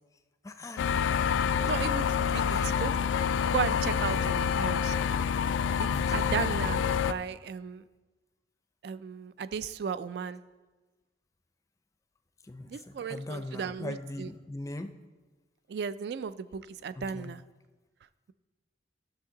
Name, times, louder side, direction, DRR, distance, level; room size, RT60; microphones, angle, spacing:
voice 1, 0.4-0.9 2.3-2.8 5.9-6.3 12.5-14.9 17.0-17.3, left 2 dB, 15° left, 9 dB, 0.4 m, -40 dB
sound 1, 0.8-7.1, left 7 dB, 90° left, 0.3 m, -27 dB
voice 2, 1.6-2.9 3.5-4.9 5.8-7.8 8.8-10.4 12.7-14.3 15.7-17.4, right 6 dB, 60° right, 15 dB, 0.3 m, -35 dB
12.5 x 6.5 x 3.8 m, 1.3 s
head